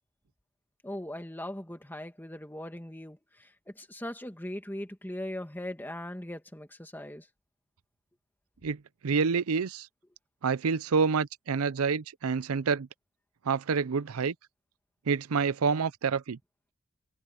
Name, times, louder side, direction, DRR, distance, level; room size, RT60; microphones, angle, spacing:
voice 1, 0.8-7.3, left 1 dB, 10° left, 2.1 m, -39 dB
voice 2, 8.6-9.9 10.4-12.9 13.5-14.3 15.1-16.4, right 5 dB, 85° right, 0.5 m, -28 dB
head